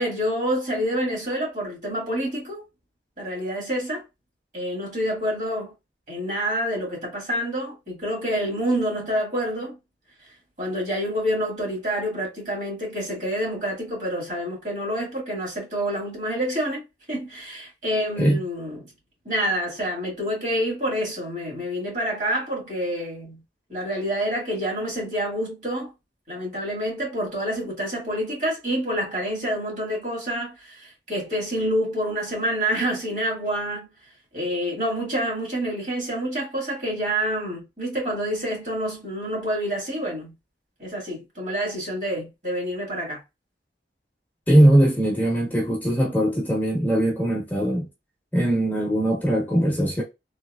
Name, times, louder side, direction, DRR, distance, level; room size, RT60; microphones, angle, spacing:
voice 1, 0.0-2.6 3.2-4.0 4.5-5.7 6.1-9.8 10.6-18.9 19.3-23.4 23.7-25.9 26.3-33.9 34.3-40.3 40.8-43.2, equal, 45° right, 1.7 m, -27 dB
voice 2, 44.5-47.9 48.3-50.0, right 1 dB, 10° left, 0.9 m, -20 dB
3.4 x 2.8 x 2.3 m
head